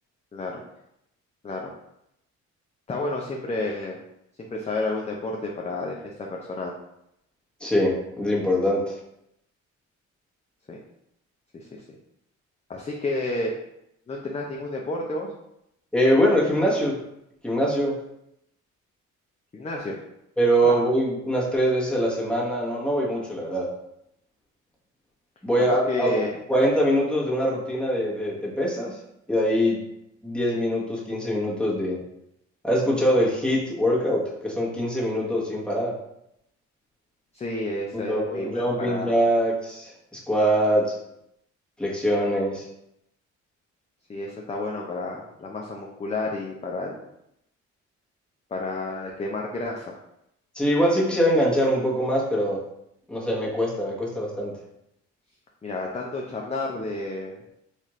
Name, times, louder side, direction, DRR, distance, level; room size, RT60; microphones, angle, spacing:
voice 1, 2.9-4.0 4.4-6.7 10.7-10.8 11.5-11.8 12.7-13.5 14.1-15.3 19.5-19.9 20.6-20.8 25.9-26.3 37.3-39.1 44.1-47.0 48.5-50.0 55.6-57.4, left 2 dB, 20° left, -1 dB, 0.5 m, -31 dB
voice 2, 7.6-8.9 15.9-17.0 17.4-17.9 20.4-23.7 25.4-26.1 26.5-29.0 29.3-29.8 30.2-32.0 32.6-35.9 37.9-40.9 41.8-42.7 50.5-52.6 53.1-54.5, equal, 5° left, -5 dB, 1.1 m, -23 dB
4.1 x 2.5 x 3.1 m, 0.80 s
cardioid pair, 90°, 30 cm